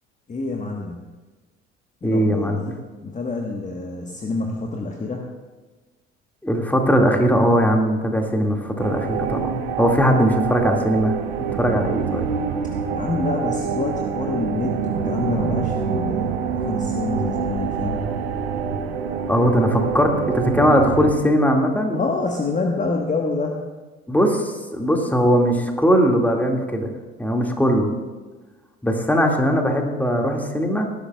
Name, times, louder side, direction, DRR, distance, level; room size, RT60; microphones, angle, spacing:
voice 1, 0.3-1.0 2.0-2.6 3.0-5.3 12.9-18.0 21.9-23.6, left 3 dB, 25° left, 1 dB, 1.3 m, -27 dB
voice 2, 2.0-2.8 6.4-11.2 11.6-12.3 19.3-22.0 24.1-26.9 27.2-27.9 28.8-30.9, equal, 5° left, 2 dB, 2.1 m, -19 dB
sound 1, 8.8-21.1, right 7 dB, 80° right, 1.0 m, -26 dB
19.0 x 11.5 x 2.3 m, 1.3 s
figure-of-eight pair, 55°, 31 cm